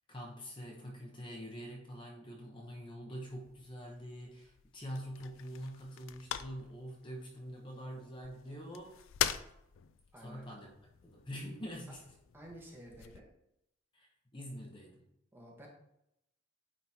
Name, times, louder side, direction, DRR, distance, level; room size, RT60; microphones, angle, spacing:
voice 1, 0.1-9.0 10.2-10.7 11.0-12.0 13.9-15.1, equal, 25° left, -1 dB, 0.9 m, -45 dB
sound 1, 3.2-13.2, left 10 dB, 80° left, 0.4 m, -43 dB
voice 2, 10.1-10.5 11.9-12.0 12.3-13.3 15.3-15.7, right 1 dB, 10° right, -3 dB, 1.3 m, -51 dB
9.4 x 3.8 x 2.9 m, 0.82 s
head